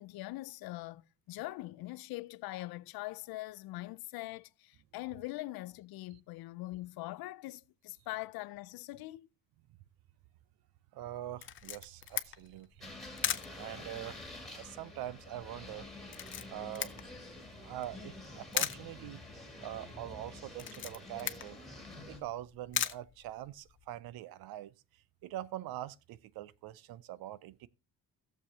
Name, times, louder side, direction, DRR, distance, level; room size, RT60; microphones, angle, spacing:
voice 1, 0.0-9.3, left 18 dB, 85° left, 0.6 m, -42 dB
voice 2, 10.9-12.9 13.5-15.9 16.5-16.9 17.6-19.2 19.6-21.6 22.1-24.7 25.2-27.7, right 13 dB, 80° right, 0.6 m, -44 dB
Camera, 11.4-23.9, left 10 dB, 35° left, 0.5 m, -41 dB
sound 1, 12.8-22.2, left 2 dB, ahead, 2.3 m, -48 dB
17.5 x 6.9 x 2.8 m
cardioid pair, 170°, 35 cm